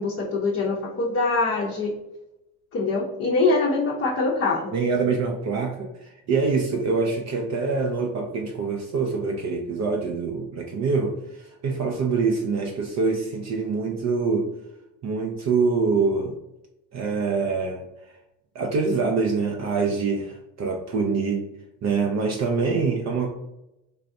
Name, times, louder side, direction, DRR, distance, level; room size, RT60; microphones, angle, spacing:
voice 1, 0.0-1.9 2.7-4.7, left 3 dB, 30° left, -2 dB, 0.6 m, -24 dB
voice 2, 4.7-14.5 15.0-16.3 16.9-17.8 18.5-21.5 21.8-23.3, right 4 dB, 35° right, 1 dB, 0.5 m, -25 dB
3.3 x 2.3 x 2.6 m, 0.91 s
hypercardioid pair, 70°, 46 cm